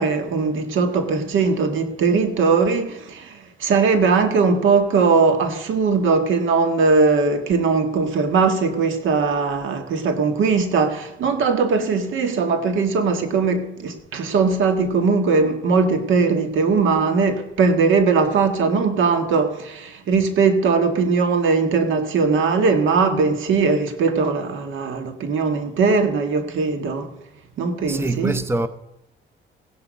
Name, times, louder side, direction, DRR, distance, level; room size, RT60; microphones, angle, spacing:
voice 1, 0.0-27.1 27.6-28.4, right 4 dB, 80° right, 1.8 m, -20 dB
voice 2, 27.9-28.7, right 2 dB, 10° right, 0.8 m, -23 dB
16.5 x 10.5 x 5.3 m
cardioid pair, 90°, 20 cm